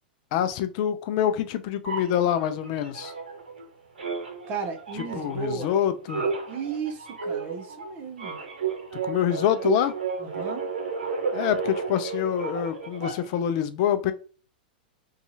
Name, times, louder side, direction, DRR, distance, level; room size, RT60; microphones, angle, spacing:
voice 1, 0.3-3.1 5.1-6.3 9.0-9.9 11.3-14.1, left 10 dB, 50° left, 0.4 m, -26 dB
sound 1, 1.8-3.7 4.0-13.5, right 5 dB, 85° right, 0.8 m, -32 dB
voice 2, 4.5-5.8 6.5-8.4 10.2-10.7, right 5 dB, 40° right, 0.8 m, -34 dB
2.7 x 2.3 x 2.7 m
hypercardioid pair, 105°, 5 cm